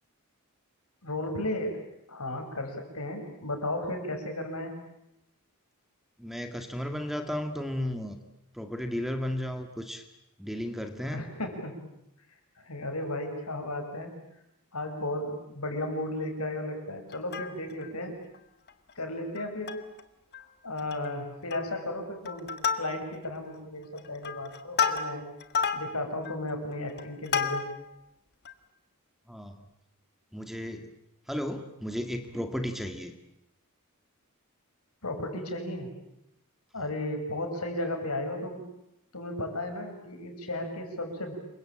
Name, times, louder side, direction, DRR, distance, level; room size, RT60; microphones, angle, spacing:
voice 1, 1.0-1.8 2.1-4.7 11.1-11.8 12.6-14.1 14.7-18.1 19.0-19.8 20.6-22.5 22.7-25.3 25.7-27.6 35.0-35.9 36.7-38.6 39.1-41.4, left 1 dB, 85° left, 5 dB, 6.5 m, -34 dB
voice 2, 6.2-8.2 8.5-10.0 10.4-11.3 29.3-29.6 30.3-30.9 31.3-33.1, equal, ahead, 6 dB, 2.0 m, -34 dB
Plucked string instrument, 17.1-17.9 18.3-18.4 18.7-18.9 19.4-20.0 20.3-20.4 20.8-21.2 21.5-21.9 22.3-23.3 23.8-27.9 28.5-28.6, left 6 dB, 50° left, 1.8 m, -32 dB
28.0 x 24.0 x 8.9 m, 0.83 s
head